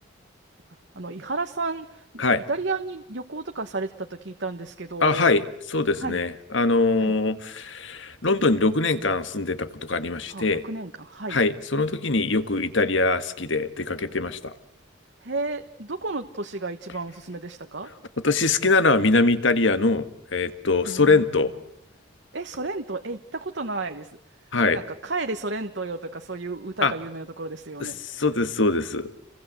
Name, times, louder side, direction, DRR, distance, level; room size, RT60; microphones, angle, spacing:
voice 1, 0.9-5.3 6.0-6.2 7.0-7.1 10.3-11.4 15.2-17.9 20.8-21.2 22.3-24.1 24.7-28.0, right 3 dB, 55° right, 6 dB, 1.3 m, -32 dB
voice 2, 5.0-5.4 5.7-10.6 11.3-14.5 18.2-20.1 20.3-21.5 24.5-24.8 26.8-26.9 27.8-27.9 28.2-29.1, left 3 dB, 65° left, 11 dB, 1.9 m, -22 dB
30.0 x 23.0 x 7.8 m, 0.71 s
head